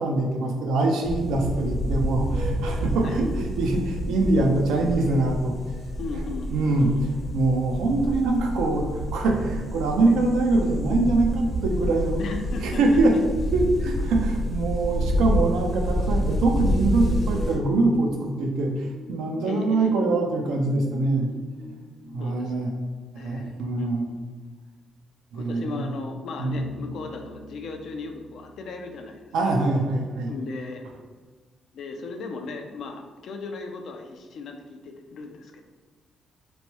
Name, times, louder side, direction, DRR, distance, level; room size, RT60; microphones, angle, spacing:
voice 1, 0.0-5.6 6.5-12.2 12.6-13.2 13.5-21.3 22.1-22.7 23.1-24.1 25.3-25.9 26.4-26.6 29.3-30.3, right 2 dB, 85° right, 2 dB, 0.4 m, -24 dB
sound 1, 1.0-17.6, equal, 40° left, 0.7 m, -28 dB
voice 2, 6.0-7.0 12.2-13.0 19.4-19.9 22.2-22.6 23.1-24.2 25.3-29.6 30.3-30.8 31.7-35.6, left 3 dB, 70° left, 4 dB, 0.4 m, -37 dB
sound 2, 15.6-22.3, left 2 dB, 5° right, 0.5 m, -43 dB
Bass guitar, 26.5-30.1, equal, 55° right, 0.7 m, -46 dB
3.0 x 2.2 x 2.9 m, 1.4 s
cardioid pair, 90°, 0 cm